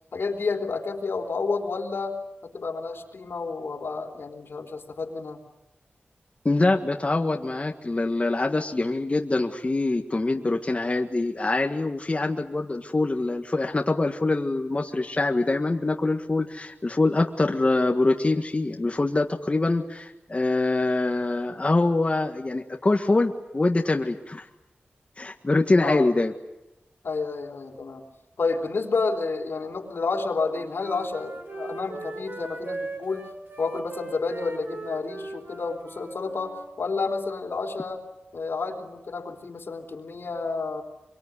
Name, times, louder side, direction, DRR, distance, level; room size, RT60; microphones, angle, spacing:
voice 1, 0.1-5.4 25.8-26.1 27.0-28.0 28.4-33.3 33.6-38.0 38.3-40.8, left 4 dB, 80° left, 3 dB, 3.9 m, -30 dB
voice 2, 6.4-24.5 25.2-26.3, left 2 dB, 35° left, 3 dB, 1.7 m, -24 dB
Wind instrument woodwind instrument, 30.3-36.7, right 2 dB, 65° right, 5.2 m, -39 dB
25.5 x 23.5 x 9.8 m, 0.91 s
wide cardioid pair, 90°, 4 cm